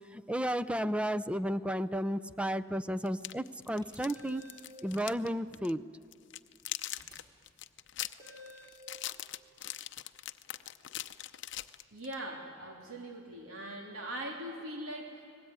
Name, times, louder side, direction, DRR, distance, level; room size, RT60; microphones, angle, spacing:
voice 1, 0.1-4.4 4.8-5.8, equal, 5° right, 13 dB, 0.5 m, -33 dB
sound 1, 3.1-5.3 5.5-5.7 6.1-12.2, left 13 dB, 60° left, 0.7 m, -41 dB
sound 2, 3.8-4.7 7.0-7.1 8.2-8.8, left 1 dB, 20° right, 5.0 m, -52 dB
voice 2, 11.9-15.3, right 1 dB, 85° right, 1 dB, 3.1 m, -41 dB
30.0 x 20.0 x 9.6 m, 2.6 s
head